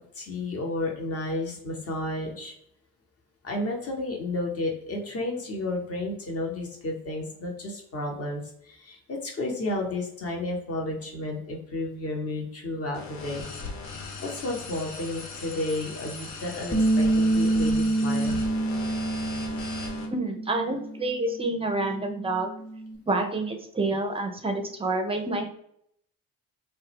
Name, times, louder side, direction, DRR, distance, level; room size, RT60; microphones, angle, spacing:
voice 1, 0.1-2.5 3.4-13.5 14.2-18.4, left 2 dB, 35° left, 0 dB, 0.9 m, -32 dB
sound 1, 12.9-20.0, left 3 dB, 75° left, 0.7 m, -38 dB
Bass guitar, 16.7-21.0 21.3-23.0, right 2 dB, 10° left, 0.8 m, -27 dB
voice 2, 20.1-22.5 23.1-25.4, right 2 dB, 15° right, 5 dB, 0.5 m, -28 dB
2.1 x 2.0 x 3.2 m, 0.70 s
figure-of-eight pair, 45°, 43 cm